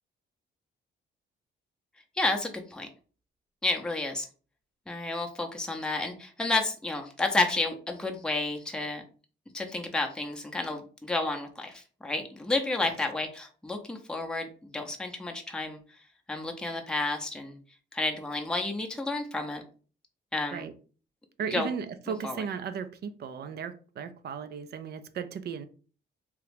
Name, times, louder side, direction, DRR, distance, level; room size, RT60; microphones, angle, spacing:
voice 1, 2.2-2.9 3.6-4.3 4.9-9.0 9.5-15.8 16.3-17.6 17.9-19.6 20.3-20.6 21.5-21.7 22.2-22.4, left 2 dB, 5° left, 0.6 m, -31 dB
voice 2, 21.4-25.7, right 7 dB, 55° right, 0.4 m, -36 dB
3.0 x 2.3 x 3.3 m
cardioid pair, 90°, 20 cm